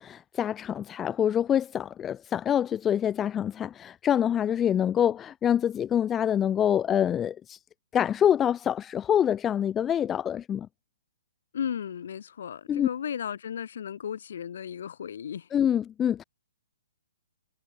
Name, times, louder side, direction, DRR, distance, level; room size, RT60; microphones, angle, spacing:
voice 1, 0.0-7.6 7.9-10.7 12.7-12.9 15.5-16.2, left 9 dB, 15° left, 0.4 m, -26 dB
voice 2, 11.5-15.5, left 8 dB, 65° left, 0.7 m, -35 dB
hypercardioid pair, 145°, 0 cm